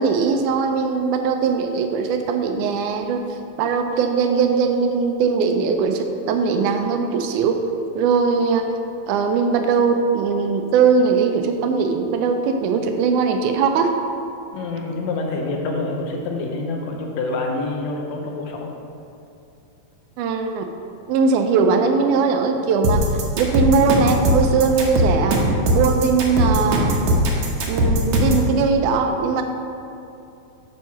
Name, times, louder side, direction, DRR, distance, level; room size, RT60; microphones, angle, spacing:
voice 1, 0.0-3.2 3.6-7.6 8.0-8.7 9.1-13.9 20.2-20.7 21.1-23.1 23.4-25.4 25.7-27.0 27.7-29.4, right 5 dB, 80° right, 5 dB, 2.0 m, -20 dB
voice 2, 14.5-18.7, left 3 dB, 70° left, 1 dB, 1.9 m, -27 dB
sound 1, 22.8-28.5, equal, 65° right, 1.6 m, -19 dB
9.2 x 3.6 x 5.7 m, 2.7 s
omnidirectional pair, 3.6 m